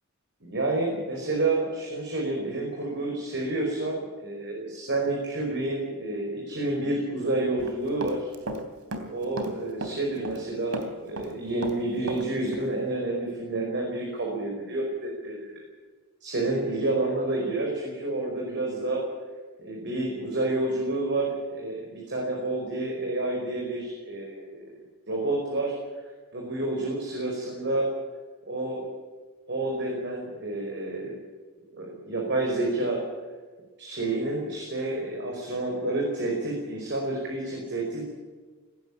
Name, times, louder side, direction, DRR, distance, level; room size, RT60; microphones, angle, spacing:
voice 1, 0.4-8.3 9.1-15.6 16.2-19.0 19.6-24.7 25.1-25.7 26.3-27.9 28.5-28.8 29.5-31.1 31.7-33.0 33.8-38.1, right 2 dB, 55° right, 0 dB, 5.0 m, -29 dB
Run, 7.6-8.6 8.9-10.5 10.7-12.3 12.5-12.7, right 1 dB, 75° right, 3.1 m, -34 dB
19.0 x 17.0 x 8.6 m, 1.4 s
head